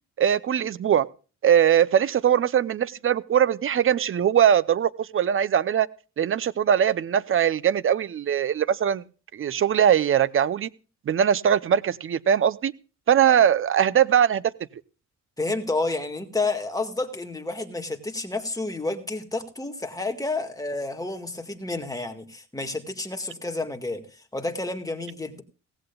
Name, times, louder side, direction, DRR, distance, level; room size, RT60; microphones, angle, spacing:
voice 1, 0.2-1.1 1.4-5.9 6.2-9.0 9.3-10.7 11.1-12.7 13.1-14.4, right 9 dB, 45° right, 0.7 m, -21 dB
voice 2, 15.4-25.4, left 2 dB, 10° left, 1.9 m, -30 dB
17.0 x 16.0 x 2.4 m
cardioid pair, 90°, 30 cm